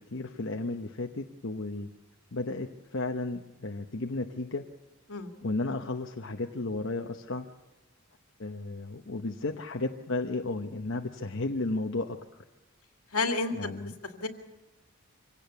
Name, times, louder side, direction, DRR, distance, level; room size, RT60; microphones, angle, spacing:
voice 1, 0.0-1.9 2.3-4.7 5.4-7.5 8.4-12.2 13.5-13.9, left 2 dB, 55° left, 3 dB, 0.9 m, -33 dB
voice 2, 13.1-13.7 14.0-14.3, left 3 dB, 80° left, 5 dB, 2.2 m, -30 dB
25.0 x 17.5 x 7.0 m, 1.0 s
head